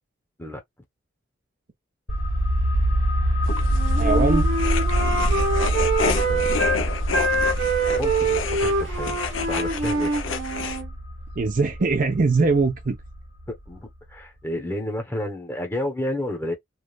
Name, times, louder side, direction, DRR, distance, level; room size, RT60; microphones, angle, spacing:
sound 1, 2.1-13.5 13.7-13.8, equal, 50° left, 1.9 m, -25 dB
sound 2, 3.4-10.8, left 5 dB, 85° left, 0.6 m, -31 dB
Wind instrument woodwind instrument, 3.7-6.8 7.1-10.9, right 3 dB, 65° right, 0.9 m, -25 dB
voice 1, 4.0-4.5 11.4-13.0, right 3 dB, 45° right, 0.5 m, -21 dB
voice 2, 7.9-10.2 13.5-16.5, left 1 dB, 10° left, 0.9 m, -31 dB
3.2 x 2.4 x 2.3 m
head